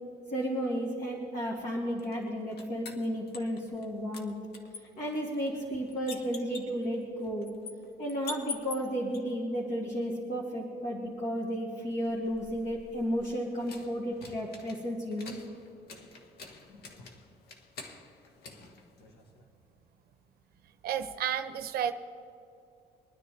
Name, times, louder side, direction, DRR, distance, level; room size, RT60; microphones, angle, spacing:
voice 1, 0.3-4.4 5.0-7.5 8.0-15.4 16.7-16.8, equal, 50° left, -3 dB, 2.5 m, -33 dB
sound 1, 2.0-3.9 4.1-9.2 12.0-19.5, left 4 dB, 70° left, 1.4 m, -47 dB
voice 2, 20.8-21.9, right 9 dB, 65° right, 9 dB, 0.6 m, -31 dB
24.5 x 10.0 x 3.4 m, 2.8 s
cardioid pair, 110°, 17 cm